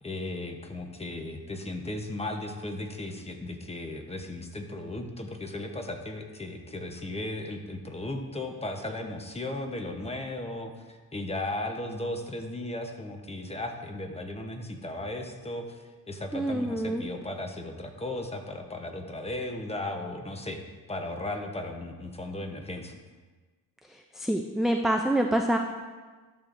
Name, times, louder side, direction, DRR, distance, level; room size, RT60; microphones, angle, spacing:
voice 1, 0.0-20.6 20.9-23.0, left 1 dB, 15° left, 4 dB, 0.8 m, -36 dB
voice 2, 16.3-17.0 24.2-25.6, right 1 dB, ahead, 2 dB, 0.3 m, -26 dB
11.0 x 7.0 x 2.5 m, 1.3 s
cardioid pair, 110°, 37 cm